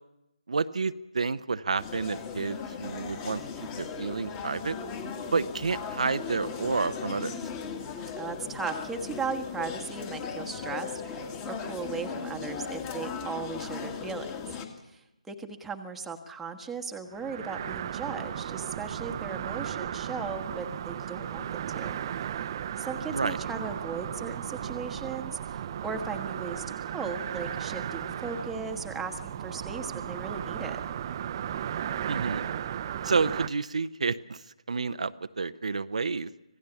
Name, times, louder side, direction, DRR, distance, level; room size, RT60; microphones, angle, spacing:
voice 1, 0.5-3.4 3.8-4.7 5.3-7.4 23.1-23.4 32.1-32.4 33.0-36.3, right 4 dB, 65° right, 11 dB, 0.8 m, -30 dB
sound 1, 1.8-14.7, left 6 dB, 20° left, 2.2 m, -37 dB
voice 2, 8.1-14.3 14.8-22.0 22.8-30.8, right 5 dB, 5° right, 3 dB, 1.3 m, -37 dB
sound 2, 17.1-33.5, right 9 dB, 35° right, 0.8 m, -35 dB
25.5 x 16.5 x 7.1 m, 0.93 s
figure-of-eight pair, 150°, 4 cm